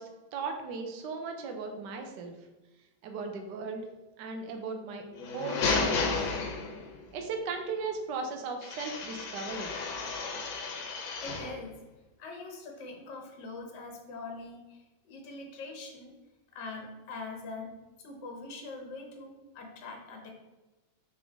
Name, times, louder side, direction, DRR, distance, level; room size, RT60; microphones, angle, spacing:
voice 1, 0.0-2.3 3.0-3.9 4.2-5.0 5.3-6.3 7.1-9.8, right 4 dB, 70° right, 4 dB, 1.3 m, -37 dB
sound 1, 5.1-7.1 8.6-11.6, left 4 dB, 85° left, 1.6 m, -32 dB
voice 2, 11.2-11.8 12.2-14.8 15.1-16.1 16.5-17.8 18.0-20.3, left 3 dB, 65° left, 1 dB, 1.6 m, -43 dB
5.4 x 5.1 x 3.5 m, 1.1 s
omnidirectional pair, 2.1 m